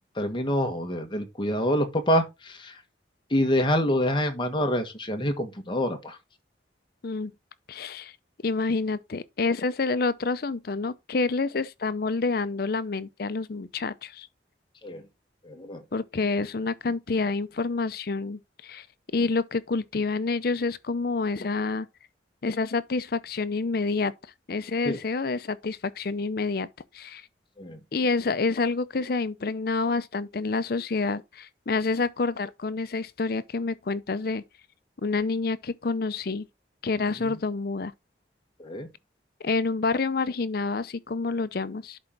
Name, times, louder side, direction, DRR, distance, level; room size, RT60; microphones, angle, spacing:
voice 1, 0.2-2.8 3.3-6.2 14.8-15.0 15.4-15.8 24.8-25.0 27.6-27.8 37.2-37.4 38.6-38.9, equal, 25° left, 1.4 m, -26 dB
voice 2, 7.7-8.1 8.4-14.3 15.9-18.9 19.1-21.9 22.4-24.1 24.5-26.7 26.9-27.2 27.9-34.4 35.0-36.5 36.8-37.9 39.4-42.0, left 3 dB, 55° left, 0.5 m, -28 dB
11.0 x 4.5 x 3.7 m
head